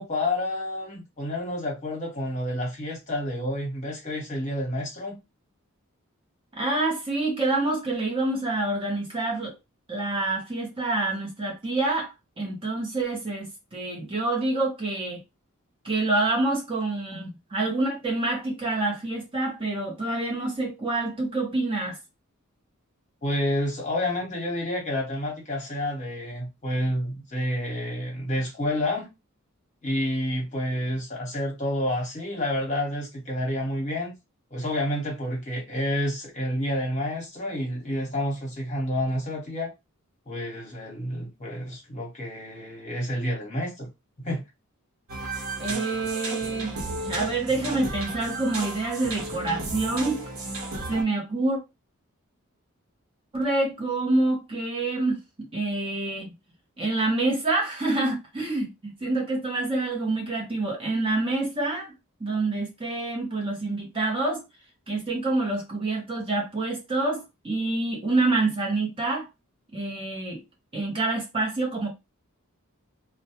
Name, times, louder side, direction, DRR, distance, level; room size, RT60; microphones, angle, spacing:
voice 1, 0.0-5.2 23.2-29.1 29.8-34.1 34.5-39.7 40.3-43.9 44.2-44.4, left 1 dB, 35° left, 1.0 m, -29 dB
voice 2, 6.5-9.6 9.9-15.2 15.8-22.0 45.6-46.8 47.0-50.2 50.9-51.6 53.3-56.3 56.8-61.9 62.2-64.4 64.9-69.3 69.7-70.4 70.7-71.9, right 2 dB, 25° right, 0.6 m, -27 dB
sound 1, 45.1-51.0, right 2 dB, 80° right, 0.8 m, -34 dB
2.1 x 2.0 x 2.8 m
head